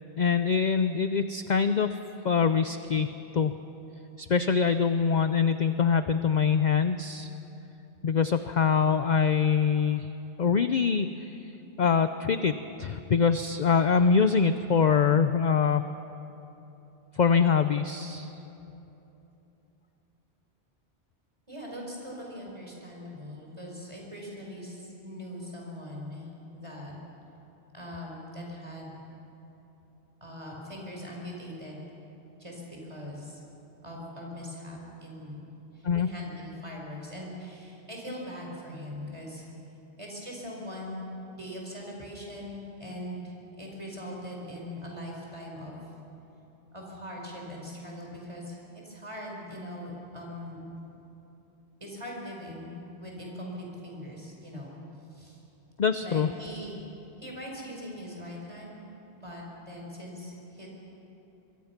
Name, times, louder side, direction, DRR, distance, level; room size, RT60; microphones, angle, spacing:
voice 1, 0.2-1.9 2.2-3.5 4.2-7.3 8.0-10.1 10.4-11.4 11.8-15.8 17.2-18.3 35.8-36.1 55.8-56.3, left 6 dB, 50° left, 10 dB, 0.6 m, -24 dB
voice 2, 21.5-26.9 27.7-29.0 30.2-31.9 32.4-33.4 33.8-35.3 35.7-39.4 40.0-41.0 41.4-45.8 46.7-48.6 48.8-50.6 51.8-54.8 55.1-55.4 56.0-56.8 57.2-58.8 59.1-60.7, equal, 25° right, -2 dB, 5.0 m, -41 dB
25.0 x 22.0 x 5.9 m, 3.0 s
omnidirectional pair, 1.2 m